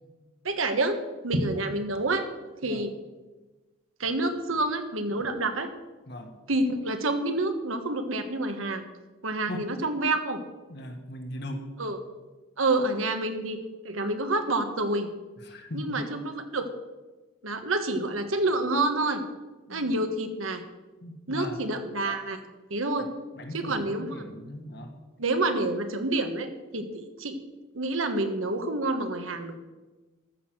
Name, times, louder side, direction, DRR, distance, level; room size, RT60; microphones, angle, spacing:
voice 1, 0.4-1.0 1.2-2.3 2.6-2.9 4.0-5.7 6.5-8.8 9.2-10.4 11.8-12.0 12.6-13.6 13.8-15.1 15.7-16.7 17.4-19.2 19.7-20.6 21.3-22.4 22.7-23.1 23.5-24.2 25.2-27.4 27.7-29.5, right 2 dB, 90° right, 7 dB, 1.4 m, -28 dB
voice 2, 10.7-11.6 15.4-16.0 19.7-19.9 21.0-21.6 23.4-24.9, left 1 dB, 55° left, 4 dB, 1.7 m, -38 dB
13.5 x 6.5 x 7.8 m, 1.2 s
head